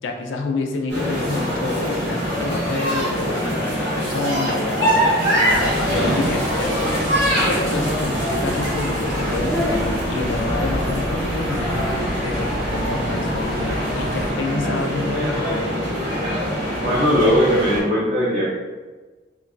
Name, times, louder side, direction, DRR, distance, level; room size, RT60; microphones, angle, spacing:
voice 1, 0.0-6.9 7.5-9.8 10.1-15.7, left 3 dB, 85° left, 3 dB, 0.4 m, -28 dB
sound 1, 0.9-17.8, equal, 60° right, 1.1 m, -23 dB
Bus, 5.5-14.3, equal, 5° right, 0.6 m, -31 dB
voice 2, 16.8-18.4, equal, 45° right, -8 dB, 0.5 m, -18 dB
3.0 x 2.3 x 2.4 m, 1.3 s
head